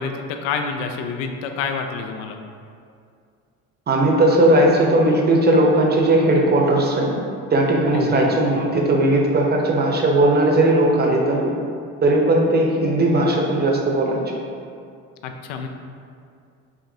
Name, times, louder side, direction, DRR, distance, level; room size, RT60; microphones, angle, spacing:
voice 1, 0.0-2.4 7.9-8.4 15.2-15.7, left 5 dB, 85° left, 5 dB, 0.5 m, -28 dB
voice 2, 3.9-7.2 7.5-11.5 12.0-14.4, right 1 dB, 30° right, 0 dB, 0.7 m, -17 dB
5.0 x 2.6 x 2.7 m, 2.3 s
supercardioid pair, 85°, 36 cm